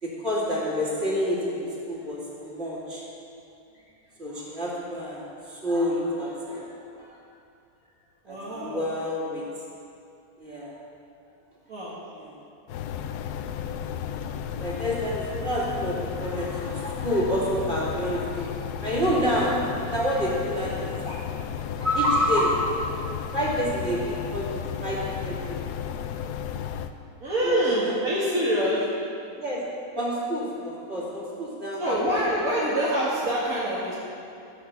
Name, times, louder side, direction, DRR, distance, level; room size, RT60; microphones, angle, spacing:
voice 1, 0.0-3.0 4.2-6.7 7.0-7.1 8.3-9.4 10.4-10.7 12.2-12.3 14.6-18.5 18.8-19.6 19.8-21.2 21.8-22.6 23.3-25.9 27.4-27.9 29.4-29.6 29.9-32.2, equal, 40° right, -5 dB, 3.1 m, -28 dB
voice 2, 8.2-8.9 11.7-12.0 27.2-28.8 31.8-33.9, equal, 60° right, -9 dB, 2.4 m, -25 dB
sound 1, 12.7-26.9, left 8 dB, 85° left, 1.2 m, -33 dB
15.0 x 6.5 x 7.2 m, 2.5 s
omnidirectional pair, 1.7 m